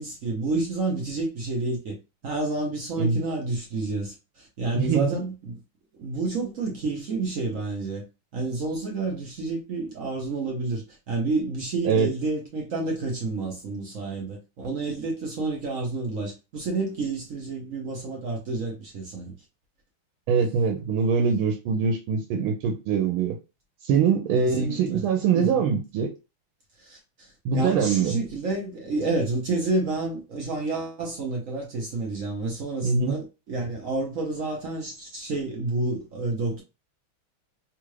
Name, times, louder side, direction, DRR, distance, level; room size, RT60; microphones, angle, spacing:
voice 1, 0.0-1.9 2.2-5.6 6.0-8.0 8.3-19.3 24.4-25.0 25.3-25.6 26.8-27.0 27.5-36.6, right 3 dB, 60° right, 0.9 m, -29 dB
voice 2, 4.7-5.1 11.8-12.1 20.3-23.4 23.8-26.1 27.4-28.2 32.8-33.2, right 6 dB, 90° right, 1.5 m, -23 dB
3.6 x 2.4 x 3.1 m
omnidirectional pair, 2.3 m